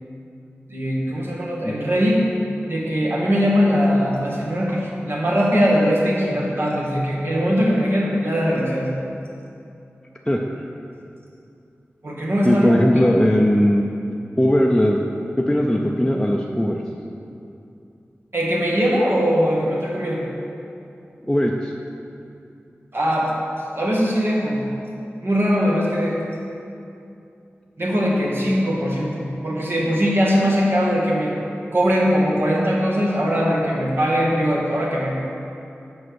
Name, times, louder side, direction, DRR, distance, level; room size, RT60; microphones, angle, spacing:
voice 1, 0.7-2.2 2.7-8.9 12.0-12.8 18.3-20.2 22.9-23.3 23.8-24.6 25.2-26.2 27.8-31.3 31.7-35.2, equal, 55° right, -4 dB, 1.8 m, -20 dB
voice 2, 12.5-13.9 14.4-15.0 15.4-16.8 21.2-21.7, equal, 10° left, -1 dB, 0.6 m, -18 dB
7.6 x 5.5 x 6.3 m, 2.7 s
wide cardioid pair, 55°, 5 cm